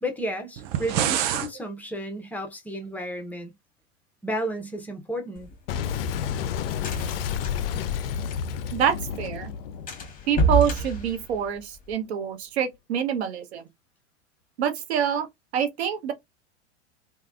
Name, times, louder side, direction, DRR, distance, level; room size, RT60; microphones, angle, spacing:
voice 1, 0.0-3.5 4.2-5.5, equal, 5° left, 0.7 m, -32 dB
sound 1, 0.6-1.5, right 10 dB, 30° right, 0.4 m, -26 dB
sound 2, 5.4-8.8 9.1-9.2 9.4-9.6 9.9-11.9, right 3 dB, 25° left, 1.2 m, -28 dB
Boom, 5.7-10.9, left 8 dB, 55° left, 0.4 m, -30 dB
voice 2, 8.7-9.5 10.3-13.7 14.6-15.3 15.5-16.1, right 8 dB, 60° right, 0.9 m, -26 dB
3.2 x 2.3 x 2.3 m
figure-of-eight pair, 95°, 36 cm